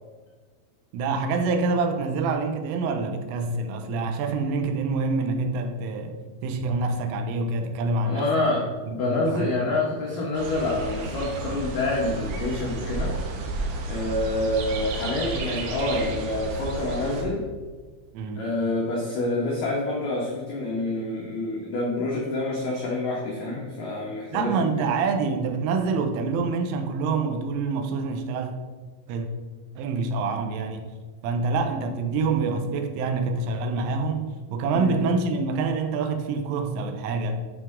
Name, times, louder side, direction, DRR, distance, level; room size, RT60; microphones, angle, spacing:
voice 1, 0.9-8.3 8.9-9.5 18.1-18.4 24.3-28.5 29.1-29.3 29.8-30.9 31.2-37.4, right 4 dB, 90° right, 6 dB, 3.3 m, -26 dB
voice 2, 8.0-13.1 13.8-17.4 18.4-24.8 34.7-35.0, left 2 dB, 85° left, -3 dB, 1.9 m, -27 dB
sound 1, 10.3-17.2, right 2 dB, 70° right, 2.5 m, -32 dB
11.5 x 5.4 x 3.6 m, 1.4 s
omnidirectional pair, 5.6 m